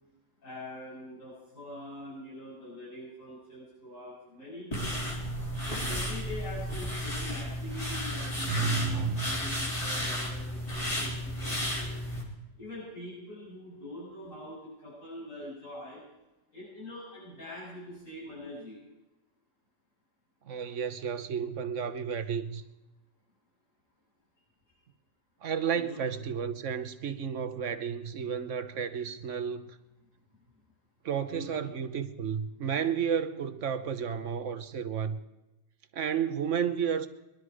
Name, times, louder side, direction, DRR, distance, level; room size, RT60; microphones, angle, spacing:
voice 1, 0.4-5.0 5.6-12.0 12.6-16.0 16.5-18.8 25.7-26.0 31.3-31.6, left 1 dB, 90° left, 7.9 m, -44 dB
sound 1, 4.7-12.2, equal, 30° left, 4.0 m, -33 dB
voice 2, 8.4-9.3 20.5-22.6 25.4-29.7 31.0-35.2 35.9-37.1, right 7 dB, 70° right, 1.4 m, -32 dB
22.0 x 12.0 x 4.9 m
omnidirectional pair, 1.3 m